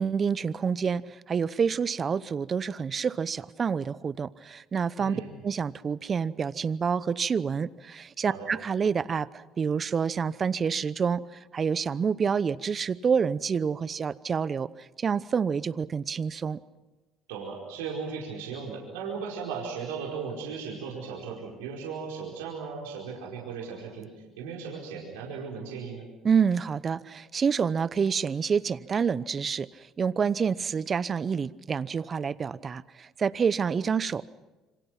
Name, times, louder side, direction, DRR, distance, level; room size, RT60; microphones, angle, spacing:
voice 1, 0.0-16.6 26.2-34.3, right 6 dB, 40° right, 18 dB, 0.8 m, -28 dB
voice 2, 5.0-5.3 8.3-8.5 17.3-26.1, right 5 dB, 85° right, -2 dB, 4.9 m, -37 dB
27.5 x 25.5 x 6.0 m, 1.1 s
hypercardioid pair, 70°, 0 cm